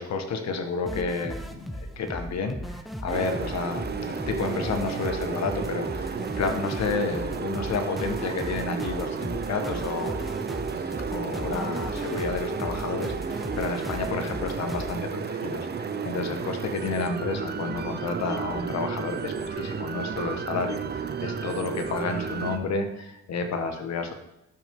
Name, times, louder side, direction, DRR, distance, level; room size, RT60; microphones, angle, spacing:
voice 1, 0.0-10.1 10.7-24.1, left 4 dB, 60° left, 6 dB, 1.4 m, -31 dB
sound 1, 0.9-15.0, equal, ahead, 0.9 m, -37 dB
sound 2, 3.1-22.6, right 5 dB, 35° right, 0.7 m, -32 dB
12.0 x 6.0 x 3.7 m, 0.88 s
cardioid pair, 90°, 30 cm